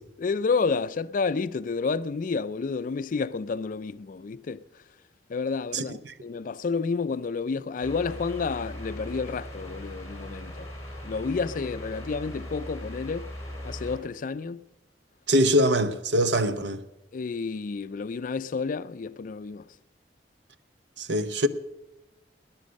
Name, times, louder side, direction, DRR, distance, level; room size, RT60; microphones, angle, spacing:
voice 1, 0.2-4.6 5.3-10.7 11.0-13.3 13.6-14.6 17.1-19.6, left 4 dB, 50° left, 0.4 m, -30 dB
voice 2, 5.7-6.1 15.3-16.8 21.0-21.5, equal, 75° right, 0.8 m, -23 dB
sound 1, 7.8-14.0, equal, 15° left, 4.2 m, -39 dB
18.0 x 10.5 x 6.4 m
head